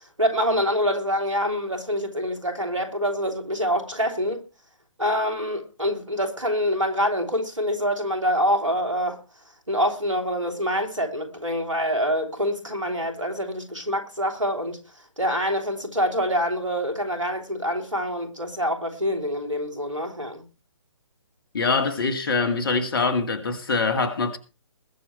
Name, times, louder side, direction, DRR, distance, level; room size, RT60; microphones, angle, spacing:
voice 1, 0.2-4.4 5.0-9.2 9.7-14.8 15.2-20.4, equal, 85° right, 3.2 m, -25 dB
voice 2, 21.5-24.4, left 4 dB, 50° left, 2.4 m, -24 dB
21.0 x 7.1 x 4.4 m
figure-of-eight pair, 140°, 16 cm